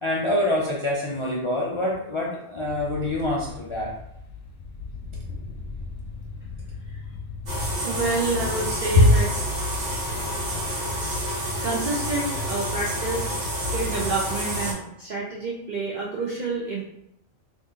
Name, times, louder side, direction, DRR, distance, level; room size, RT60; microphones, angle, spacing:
voice 1, 0.0-3.9 6.9-7.0, left 1 dB, 55° left, -5 dB, 0.3 m, -26 dB
sound 1, 2.7-10.7, left 4 dB, 85° left, 0.9 m, -38 dB
sound 2, 7.5-14.7, left 1 dB, 75° right, 1.3 m, -25 dB
voice 2, 7.8-9.3 11.3-16.8, right 3 dB, 55° right, -4 dB, 0.5 m, -29 dB
2.7 x 2.6 x 3.6 m, 0.76 s
omnidirectional pair, 1.2 m